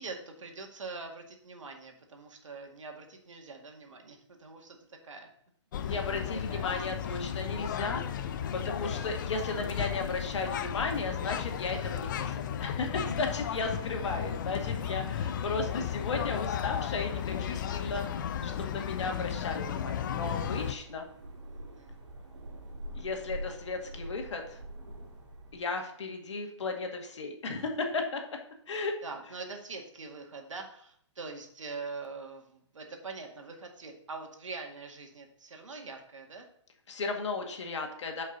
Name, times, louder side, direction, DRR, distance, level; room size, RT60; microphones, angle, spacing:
voice 1, 0.0-5.3 6.5-7.0 14.8-15.1 20.4-20.6 21.5-21.9 23.5-23.6 29.0-36.5, right 4 dB, 85° right, 2 dB, 2.0 m, -44 dB
sound 1, 5.7-20.7, left 9 dB, 40° left, 0.6 m, -34 dB
voice 2, 5.8-21.1 22.9-24.6 25.5-28.2 28.7-29.0 36.9-38.2, left 3 dB, 70° left, 3 dB, 1.9 m, -35 dB
sound 2, 20.2-25.7, right 1 dB, 70° right, 2.5 m, -45 dB
9.8 x 5.4 x 3.9 m, 0.65 s
hypercardioid pair, 155°, 16 cm